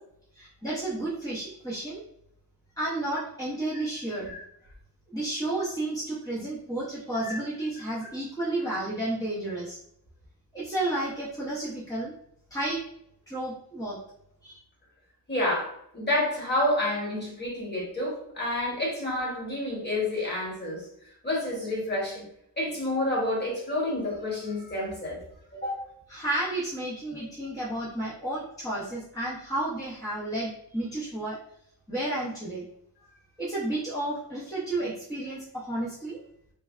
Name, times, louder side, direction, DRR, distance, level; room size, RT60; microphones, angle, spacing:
voice 1, 0.3-2.0 2.8-4.3 5.1-9.8 10.5-12.1 12.5-12.8 13.3-14.0 14.4-14.6 26.1-31.4 31.9-32.6 33.4-36.2, right 1 dB, 10° left, -8 dB, 0.6 m, -32 dB
voice 2, 15.3-20.9 21.2-22.2 22.6-25.2 25.5-25.8 34.8-34.9, left 1 dB, 25° left, -4 dB, 1.2 m, -29 dB
3.2 x 3.2 x 2.4 m, 0.72 s
wide cardioid pair, 150°, 41 cm